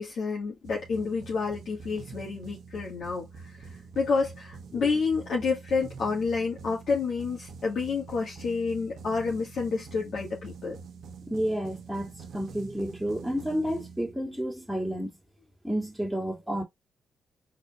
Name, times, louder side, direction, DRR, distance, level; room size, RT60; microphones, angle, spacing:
voice 1, 0.0-3.3 4.0-10.8, left 4 dB, 65° left, 1.9 m, -29 dB
sound 1, 0.6-14.5, right 5 dB, 70° right, 1.0 m, -45 dB
voice 2, 11.3-15.1 15.6-16.6, equal, 5° right, 2.4 m, -31 dB
4.3 x 3.8 x 3.0 m
cardioid pair, 75°, 0 cm